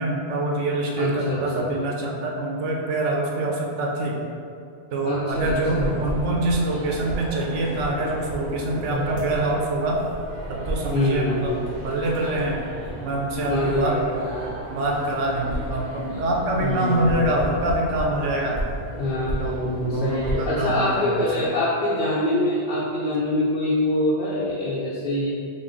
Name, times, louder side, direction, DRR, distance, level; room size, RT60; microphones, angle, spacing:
voice 1, 0.0-4.2 4.9-10.0 10.5-11.5 11.8-12.6 13.0-14.0 14.7-18.6 19.4-21.5, right 1 dB, 85° right, -1 dB, 1.0 m, -25 dB
voice 2, 1.0-1.7 5.0-6.0 8.9-9.1 10.9-11.5 13.4-14.2 16.6-17.2 19.0-25.3, left 1 dB, 55° left, -7 dB, 0.6 m, -24 dB
sound 1, 5.3-20.4, right 1 dB, 25° right, 1.4 m, -33 dB
5.1 x 2.2 x 3.6 m, 2.4 s
omnidirectional pair, 1.2 m